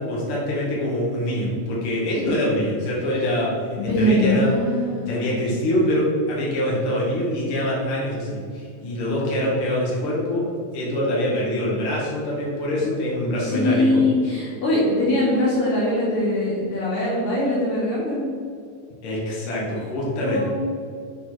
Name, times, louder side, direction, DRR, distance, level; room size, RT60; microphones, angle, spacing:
voice 1, 0.0-4.5 5.0-14.0 19.0-20.5, left 1 dB, 50° left, -5 dB, 2.1 m, -24 dB
voice 2, 3.8-5.3 13.4-18.2 20.2-20.5, left 1 dB, 65° left, -6 dB, 2.3 m, -22 dB
6.4 x 4.1 x 4.6 m, 2.3 s
omnidirectional pair, 3.8 m